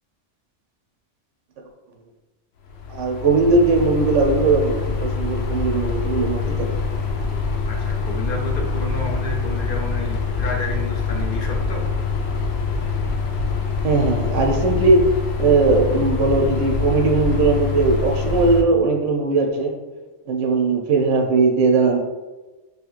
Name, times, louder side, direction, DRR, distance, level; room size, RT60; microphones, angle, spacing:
sound 1, 2.7-18.6, left 4 dB, 90° left, 1.0 m, -24 dB
voice 1, 2.9-6.8 13.8-15.0 15.4-19.7 20.3-22.0, right 3 dB, 85° right, 1 dB, 0.9 m, -19 dB
voice 2, 7.7-11.9, left 2 dB, 55° left, 1 dB, 0.7 m, -31 dB
4.8 x 2.8 x 2.4 m, 1.2 s
omnidirectional pair, 1.2 m